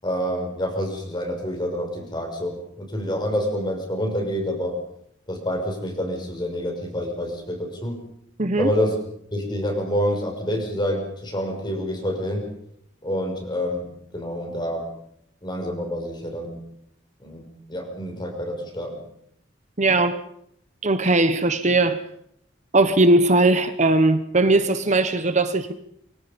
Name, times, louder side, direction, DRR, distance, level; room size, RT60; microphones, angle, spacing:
voice 1, 0.0-4.7 5.3-8.0 8.6-9.0 9.3-12.5 13.0-14.9 15.4-16.6 17.2-17.4 17.7-19.0, equal, 25° left, 6.3 m, -27 dB
voice 2, 8.4-8.7 19.8-20.2 20.8-22.0 22.7-25.7, right 2 dB, 40° right, 1.3 m, -19 dB
28.0 x 24.5 x 5.4 m
head